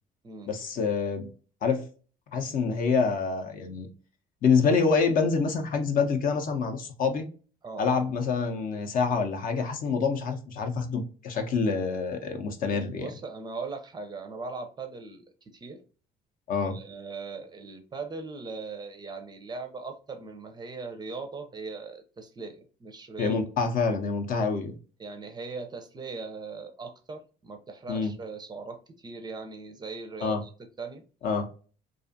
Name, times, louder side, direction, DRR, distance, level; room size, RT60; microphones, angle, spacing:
voice 1, 0.5-1.3 1.6-1.8 2.3-3.9 4.4-7.2 7.8-13.1 16.5-16.8 23.2-24.7 27.9-28.1 30.2-30.4 31.2-31.7, left 5 dB, 55° left, 6 dB, 0.6 m, -26 dB
voice 2, 13.0-15.2 15.5-15.8 16.6-23.4 25.0-30.5 30.8-31.0, right 4 dB, 25° right, 6 dB, 0.4 m, -39 dB
2.5 x 2.3 x 2.6 m, 0.37 s
cardioid pair, 110°, 17 cm